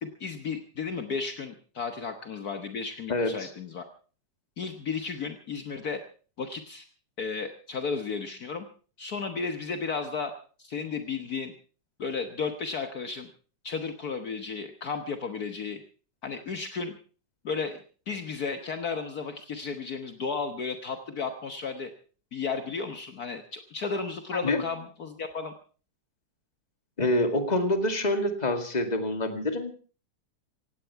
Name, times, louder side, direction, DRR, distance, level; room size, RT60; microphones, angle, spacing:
voice 1, 0.0-3.8 4.6-6.0 6.4-6.8 7.2-8.7 9.0-10.3 10.6-11.5 12.0-13.3 13.6-15.8 16.2-16.9 17.4-17.8 18.1-21.9 22.3-25.5, left 5 dB, 65° left, 7 dB, 0.9 m, -33 dB
voice 2, 3.1-3.5 24.3-24.6 27.0-29.8, left 1 dB, 15° left, 6 dB, 1.6 m, -26 dB
17.5 x 17.0 x 4.7 m, 0.40 s
omnidirectional pair, 3.5 m